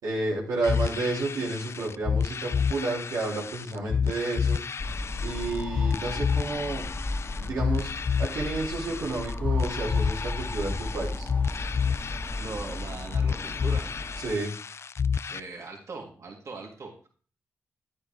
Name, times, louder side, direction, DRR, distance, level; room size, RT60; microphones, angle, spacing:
voice 1, 0.0-4.6 5.2-6.9 7.4-7.9 8.2-11.3 14.2-14.5, right 2 dB, 85° right, -5 dB, 3.3 m, -31 dB
sound 1, 0.6-15.4, left 6 dB, 50° left, 0.5 m, -30 dB
sound 2, 4.8-14.4, left 2 dB, 30° left, 1.9 m, -35 dB
voice 2, 12.4-13.9 15.3-17.1, right 4 dB, 60° right, -1 dB, 3.3 m, -40 dB
10.0 x 8.7 x 3.7 m, 0.41 s
cardioid pair, 60°, 6 cm